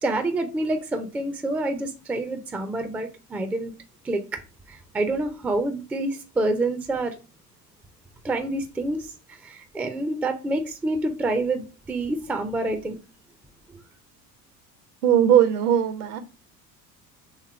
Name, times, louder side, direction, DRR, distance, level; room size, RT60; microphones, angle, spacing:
voice 1, 0.0-3.7 4.0-4.4 4.7-7.1 8.2-13.0 13.7-13.8, right 2 dB, 5° right, 0.3 m, -27 dB
voice 2, 15.0-16.2, right 10 dB, 65° right, 0.8 m, -19 dB
3.4 x 3.1 x 4.2 m
figure-of-eight pair, 65°, 49 cm